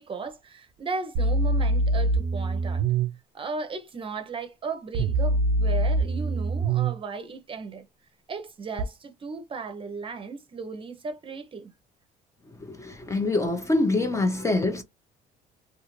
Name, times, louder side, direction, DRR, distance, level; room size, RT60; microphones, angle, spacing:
voice 1, 0.0-2.8 3.3-7.8 8.3-11.7, right 4 dB, 30° right, 0.6 m, -36 dB
sound 1, 1.1-3.1 4.9-6.9 8.8-8.9, right 2 dB, 85° right, 0.4 m, -24 dB
voice 2, 12.7-14.8, left 2 dB, 15° left, 0.5 m, -25 dB
2.5 x 2.4 x 3.0 m
cardioid pair, 110°, 17 cm